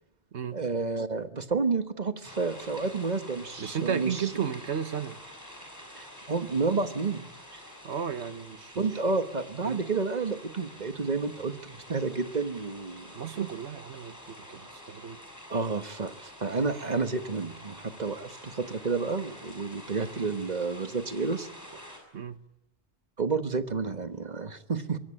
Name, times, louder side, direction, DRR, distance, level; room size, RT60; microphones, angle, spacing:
voice 1, 0.5-4.3 5.9-7.2 7.5-7.6 8.8-13.1 15.5-21.5 23.2-25.0, right 4 dB, 40° right, 8 dB, 1.4 m, -30 dB
sound 1, 2.2-22.0, equal, 15° left, 6.5 m, -48 dB
voice 2, 3.6-5.2 7.8-8.9 9.6-9.8 13.1-15.2 22.1-22.4, right 7 dB, 85° right, 11 dB, 1.5 m, -34 dB
24.0 x 21.5 x 8.9 m, 0.90 s
omnidirectional pair, 1.1 m